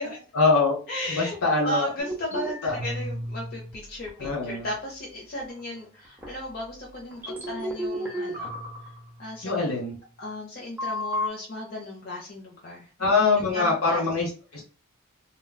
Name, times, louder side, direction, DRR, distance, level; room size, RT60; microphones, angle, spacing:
voice 1, 0.3-0.8 1.1-1.9 2.6-2.8 4.2-4.7 7.2-7.3 9.4-9.9 13.0-14.6, left 3 dB, 80° left, -2 dB, 1.0 m, -23 dB
voice 2, 0.9-1.4 1.6-8.5 8.8-8.9 9.2-9.7 10.2-12.9 13.4-14.0, equal, 45° left, -2 dB, 0.6 m, -35 dB
sound 1, 2.0-3.7 4.1-5.0 5.5-5.6 6.2-6.4 7.1-9.6 10.8-11.3, equal, 10° right, 0.7 m, -33 dB
3.7 x 2.2 x 2.3 m, 0.37 s
head